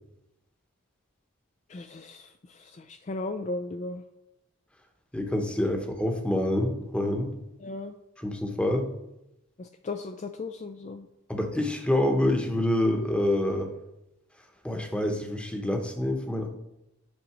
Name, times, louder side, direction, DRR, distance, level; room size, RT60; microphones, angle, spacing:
voice 1, 1.7-4.0 7.6-7.9 9.6-11.1, left 2 dB, 35° left, 7 dB, 0.3 m, -36 dB
voice 2, 5.1-7.3 8.2-8.9 11.3-13.7 14.6-16.5, left 1 dB, 5° left, 3 dB, 0.9 m, -27 dB
8.5 x 4.1 x 6.0 m, 0.88 s
head